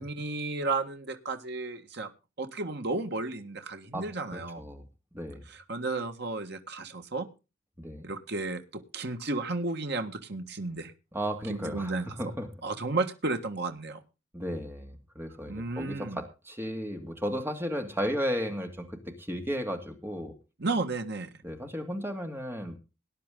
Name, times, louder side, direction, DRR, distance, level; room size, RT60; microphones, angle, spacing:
voice 1, 0.0-2.1 2.4-4.6 5.5-7.3 8.0-10.9 11.5-12.1 12.6-14.0 15.5-16.2 20.6-21.3, right 3 dB, 60° right, 6 dB, 1.7 m, -33 dB
voice 2, 4.3-4.9 5.1-5.4 7.8-8.1 11.1-12.5 14.3-20.3 21.4-22.8, equal, 10° right, 5 dB, 2.3 m, -34 dB
19.0 x 10.5 x 3.8 m, 0.31 s
head